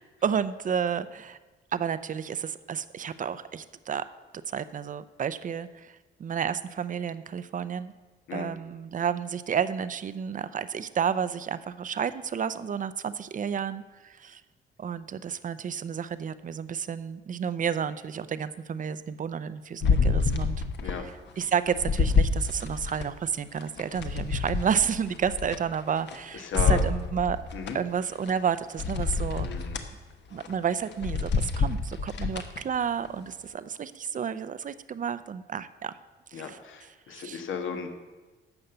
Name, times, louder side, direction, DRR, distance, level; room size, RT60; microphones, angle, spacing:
voice 1, 0.2-1.4 1.7-4.1 4.5-5.9 6.2-7.9 8.3-14.4 14.8-20.6 20.8-21.0 21.4-27.4 27.7-29.5 30.3-35.9 36.3-36.6 37.1-37.4, right 7 dB, 40° right, 14 dB, 0.6 m, -31 dB
sound 1, 19.8-21.0 21.4-23.1 23.6-26.2 26.5-27.7 28.3-28.4 28.8-29.9 30.3-30.5 30.9-32.6 33.1-33.2, left 4 dB, 60° left, 1.1 m, -27 dB
voice 2, 26.3-26.8 27.5-27.8 29.4-29.8 32.1-32.3 36.3-37.9, left 6 dB, 80° left, 5 dB, 1.5 m, -35 dB
13.0 x 5.4 x 7.9 m, 1.3 s
cardioid pair, 90°, 20 cm